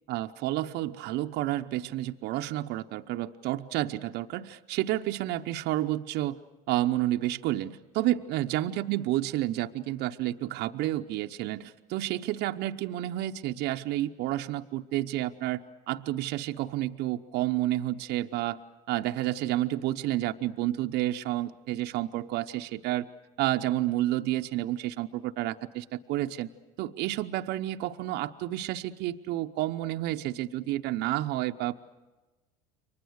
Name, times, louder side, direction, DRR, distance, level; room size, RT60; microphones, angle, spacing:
voice 1, 0.1-6.4 6.7-15.6 15.9-18.6 18.9-23.1 23.4-26.5 26.8-31.9, right 15 dB, 55° right, 5 dB, 0.9 m, -30 dB
29.5 x 24.0 x 6.5 m, 1.2 s
hypercardioid pair, 90°, 20 cm